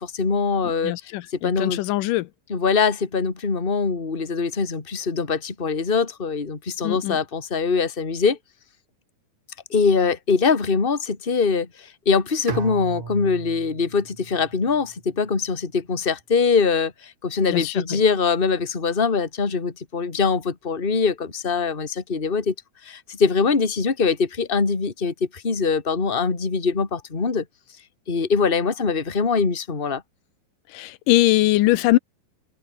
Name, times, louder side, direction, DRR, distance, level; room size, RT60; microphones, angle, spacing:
voice 1, 0.0-0.9 1.3-1.8 2.5-8.4 9.7-22.5 22.8-27.4 28.1-30.0, left 5 dB, 20° left, 2.1 m, -23 dB
voice 2, 0.8-2.3 6.8-7.2 17.5-18.0 30.7-32.0, left 17 dB, 80° left, 2.2 m, -21 dB
Bowed string instrument, 12.5-15.5, right 5 dB, 55° right, 5.4 m, -37 dB
omnidirectional pair, 4.1 m